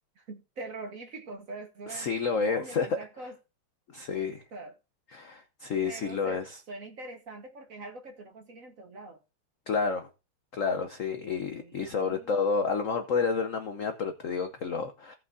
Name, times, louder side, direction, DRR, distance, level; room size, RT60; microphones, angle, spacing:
voice 1, 0.1-2.1 2.4-3.3 4.5-4.7 5.8-9.2 11.2-12.4, right 2 dB, 45° right, 1.5 m, -43 dB
voice 2, 1.9-3.0 3.9-4.4 5.1-6.4 9.7-10.1 10.5-15.1, left 5 dB, 60° left, 0.8 m, -30 dB
17.0 x 5.9 x 2.7 m
omnidirectional pair, 2.4 m